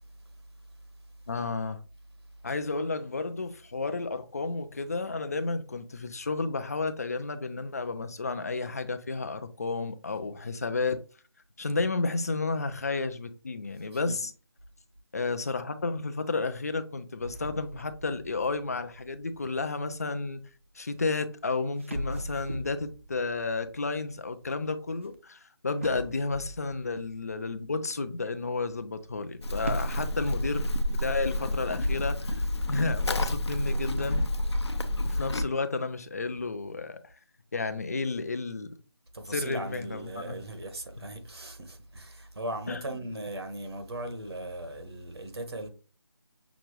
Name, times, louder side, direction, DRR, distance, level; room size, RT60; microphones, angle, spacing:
voice 1, 1.3-1.8 2.4-11.0 11.6-14.3 15.1-20.4 20.8-34.2 35.0-37.1 37.5-38.7 39.3-40.4 42.7-42.9, left 3 dB, 35° left, 0.5 m, -32 dB
sound 1, 17.2-20.4 21.3-21.4 21.8-25.1 25.8-27.7 29.6-31.4 31.6-31.7 32.4-32.5 33.5-34.1, right 1 dB, 30° right, 0.5 m, -41 dB
Livestock farm animals working animals, 29.4-35.4, left 1 dB, 80° left, 0.7 m, -29 dB
voice 2, 39.1-45.7, right 1 dB, 70° right, 1.4 m, -38 dB
5.9 x 2.5 x 3.2 m
figure-of-eight pair, 170°, 14 cm